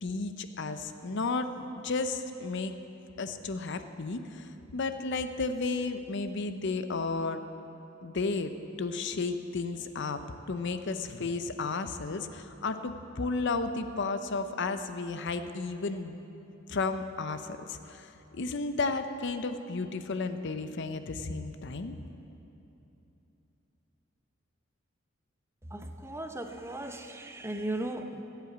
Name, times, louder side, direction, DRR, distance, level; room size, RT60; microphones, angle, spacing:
voice 1, 0.0-2.7 3.2-7.4 8.0-16.2 16.7-22.0, left 3 dB, 65° left, 9 dB, 0.7 m, -33 dB
voice 2, 25.7-28.2, right 1 dB, 15° right, 6 dB, 0.7 m, -37 dB
15.0 x 8.2 x 8.0 m, 2.9 s
head